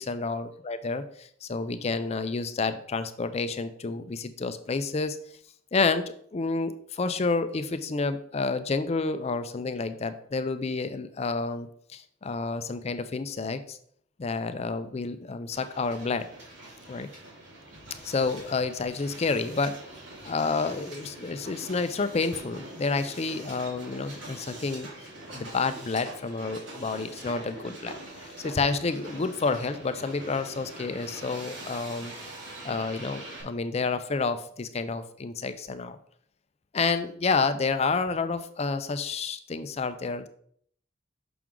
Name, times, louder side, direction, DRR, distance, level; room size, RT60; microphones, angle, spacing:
voice 1, 0.0-5.2 5.7-13.8 14.2-16.3 16.9-17.1 18.0-19.8 20.2-24.9 25.3-32.1 32.6-36.0 36.7-40.3, left 4 dB, 35° left, 11 dB, 0.4 m, -29 dB
Hiss, 15.5-33.4, right 1 dB, 70° right, 2.3 m, -44 dB
6.0 x 6.0 x 3.7 m, 0.63 s
head